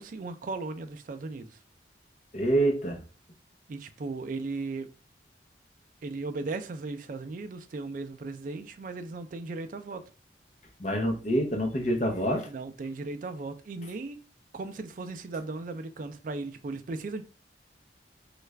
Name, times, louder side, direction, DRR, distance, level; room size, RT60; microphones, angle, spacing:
voice 1, 0.0-1.5 3.7-4.9 6.0-10.0 12.5-14.2 14.5-17.2, right 3 dB, 45° right, 0.3 m, -36 dB
voice 2, 2.3-3.0 10.8-12.5, right 1 dB, 40° left, 0.7 m, -26 dB
3.2 x 2.4 x 3.2 m
head